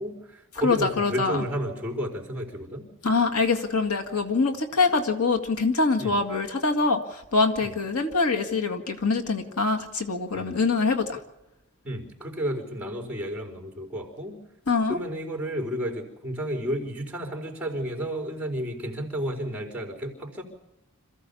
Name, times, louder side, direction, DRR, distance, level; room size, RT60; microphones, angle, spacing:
voice 1, 0.0-2.9 6.0-6.2 7.6-7.7 10.3-10.6 11.8-14.4 14.9-20.4, equal, 5° right, 3 dB, 4.3 m, -32 dB
voice 2, 0.6-1.4 3.0-11.2 14.7-15.0, left 4 dB, 85° left, 4 dB, 1.9 m, -24 dB
26.5 x 15.0 x 7.0 m, 0.90 s
head